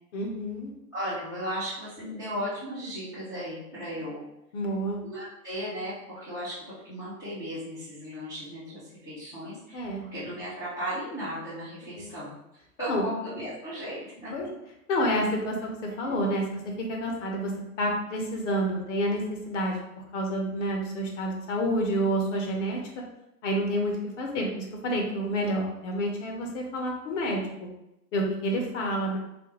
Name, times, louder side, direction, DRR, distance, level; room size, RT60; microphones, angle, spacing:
voice 1, 0.1-0.7 4.5-5.0 9.7-10.0 11.9-12.1 12.9-13.0 14.3-14.5 14.9-17.5 17.8-19.8 20.1-23.0 23.4-27.7 28.1-29.2, equal, 50° left, 1 dB, 0.9 m, -29 dB
voice 2, 0.9-4.2 5.0-9.9 10.1-12.4 12.8-14.3 16.0-16.2, equal, 10° left, -15 dB, 0.3 m, -36 dB
3.4 x 2.2 x 3.0 m, 0.87 s
hypercardioid pair, 140°, 47 cm